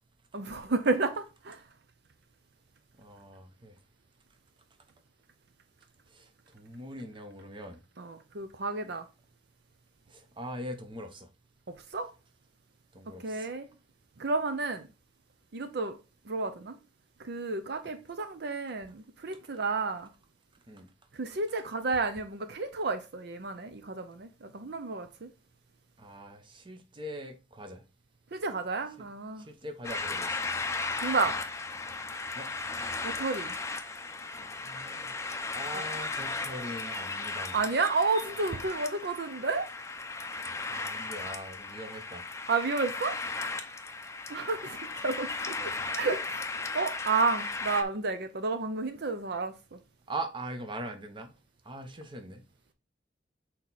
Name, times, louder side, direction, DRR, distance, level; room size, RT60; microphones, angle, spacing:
voice 1, 0.3-1.7 8.0-9.1 11.7-12.1 13.2-13.7 14.2-14.9 15.5-16.0 16.2-16.8 17.2-20.1 21.1-25.3 28.3-29.5 31.0-31.4 33.0-33.6 35.7-35.8 37.5-39.7 42.5-43.2 44.3-46.5 46.7-49.8, right 3 dB, 60° right, 0.6 m, -31 dB
voice 2, 3.0-3.8 6.1-7.8 10.1-11.3 12.9-13.5 20.7-20.9 26.0-27.8 29.0-29.1 29.4-30.4 32.3-32.5 34.6-35.1 35.5-37.6 40.7-42.2 50.1-51.3 51.6-52.4, right 1 dB, 25° right, 0.9 m, -41 dB
sound 1, 29.8-47.8, left 3 dB, 15° left, 0.6 m, -36 dB
6.4 x 4.3 x 4.0 m
head